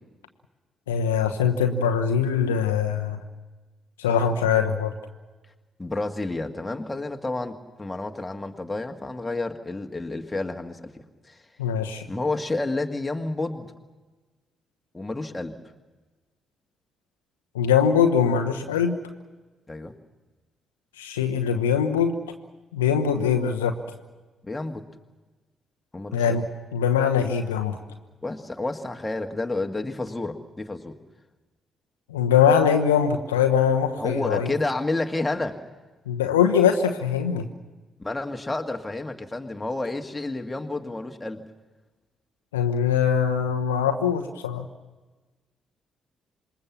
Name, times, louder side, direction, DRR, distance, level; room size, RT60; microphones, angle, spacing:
voice 1, 0.9-3.2 4.0-4.9 11.6-12.0 17.5-19.0 21.0-22.2 22.7-23.7 26.1-26.5 26.7-27.8 32.1-34.5 36.1-37.5 42.5-44.7, left 7 dB, 75° left, 5 dB, 1.0 m, -22 dB
voice 2, 5.8-10.9 11.3-11.4 12.1-13.7 14.9-15.6 19.7-19.9 24.4-24.8 25.9-26.4 28.2-31.0 34.0-35.6 38.0-41.4, left 2 dB, 15° left, 3 dB, 1.7 m, -30 dB
26.5 x 21.0 x 7.2 m, 1.2 s
figure-of-eight pair, 40°, 0 cm